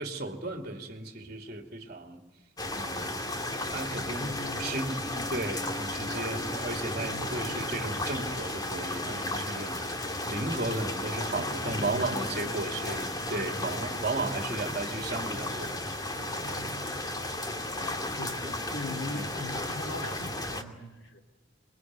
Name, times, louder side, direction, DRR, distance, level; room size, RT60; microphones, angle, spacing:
voice 1, 0.0-2.2 2.7-3.2 3.7-15.8 19.1-19.2, right 2 dB, 45° right, 3 dB, 2.7 m, -35 dB
sound 1, 2.6-20.6, left 1 dB, 20° left, 2.5 m, -34 dB
voice 2, 4.1-4.7 6.0-6.4 7.0-7.8 11.3-12.7 18.2-21.2, left 2 dB, 75° left, 3 dB, 4.2 m, -41 dB
28.0 x 22.0 x 9.5 m, 1.2 s
head